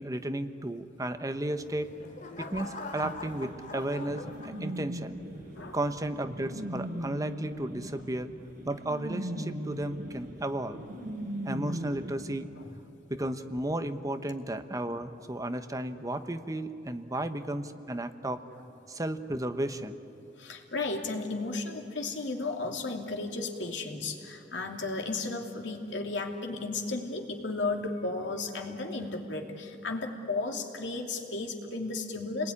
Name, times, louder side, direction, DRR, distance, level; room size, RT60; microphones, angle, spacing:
voice 1, 0.0-1.9 2.4-5.2 5.7-8.3 8.7-10.8 11.4-12.5 13.1-18.4 18.9-20.0, right 1 dB, 20° right, 9 dB, 1.0 m, -34 dB
sound 1, 1.5-5.1 5.6-6.0, left 3 dB, 45° left, 2.4 m, -43 dB
sound 2, 3.0-12.1, equal, 50° right, 4.2 m, -39 dB
voice 2, 20.4-32.5, left 3 dB, 85° left, 3 dB, 2.7 m, -34 dB
30.0 x 20.5 x 9.8 m, 2.8 s
head